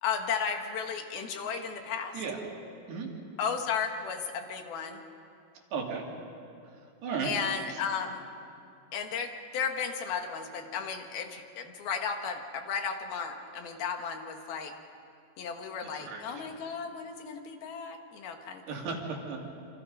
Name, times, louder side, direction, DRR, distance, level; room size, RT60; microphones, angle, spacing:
voice 1, 0.0-2.1 3.4-5.0 7.2-8.2 8.9-14.7 15.4-18.8, left 6 dB, 70° left, 4 dB, 3.3 m, -34 dB
voice 2, 5.7-6.0 7.0-7.3 7.7-7.8 15.8-16.6 18.7-19.4, right 5 dB, 85° right, 0 dB, 4.8 m, -35 dB
27.5 x 26.5 x 5.5 m, 2.5 s
omnidirectional pair, 4.6 m